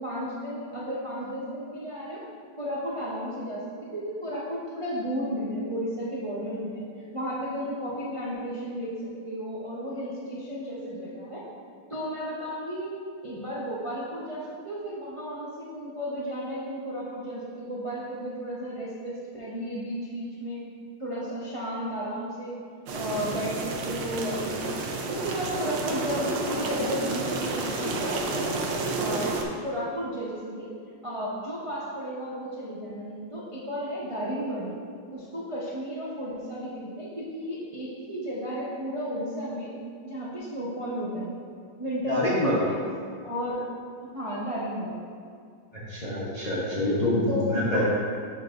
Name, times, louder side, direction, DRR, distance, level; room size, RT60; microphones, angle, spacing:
voice 1, 0.0-2.2 2.6-3.6 3.9-6.8 7.1-11.4 11.9-12.9 13.2-20.6 21.0-22.6 22.9-24.7 25.1-29.3 29.6-30.7 31.0-34.7 35.1-39.7 40.0-41.4 41.8-42.8 43.2-43.6 44.1-45.0 47.3-47.8, equal, 50° right, -8 dB, 0.3 m, -33 dB
sound 1, 22.9-29.4, right 3 dB, 75° right, 1.3 m, -30 dB
voice 2, 42.1-42.6 45.9-47.8, left 1 dB, 40° left, -7 dB, 0.5 m, -26 dB
10.5 x 4.0 x 2.5 m, 2.2 s
omnidirectional pair, 2.1 m